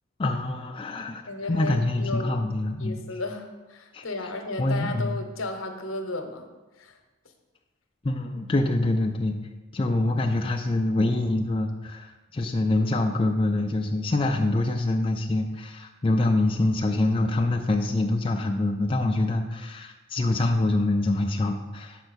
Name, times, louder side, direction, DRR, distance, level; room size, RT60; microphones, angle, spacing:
voice 1, 0.2-1.2 1.5-3.0 3.9-4.0 4.6-5.2 8.0-9.4 9.7-22.1, left 2 dB, 25° left, 2 dB, 0.4 m, -25 dB
voice 2, 1.3-2.4 2.8-6.5 6.8-7.0, left 2 dB, 75° left, 6 dB, 0.9 m, -34 dB
6.6 x 4.5 x 6.3 m, 1.2 s
head